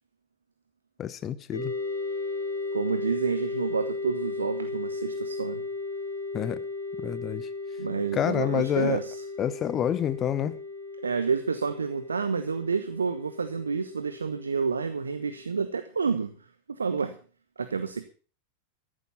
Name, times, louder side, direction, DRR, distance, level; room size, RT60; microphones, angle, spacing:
voice 1, 1.0-1.7 6.3-6.6 7.0-7.5 8.1-9.0 9.4-10.6, left 10 dB, 30° left, 0.9 m, -28 dB
sound 1, 1.5-15.4, left 3 dB, 75° left, 6.0 m, -36 dB
voice 2, 2.7-5.6 7.8-9.2 11.0-16.3 16.7-17.2 17.6-18.0, right 5 dB, 75° right, 1.0 m, -29 dB
14.0 x 11.5 x 5.7 m
figure-of-eight pair, 90°, 0 cm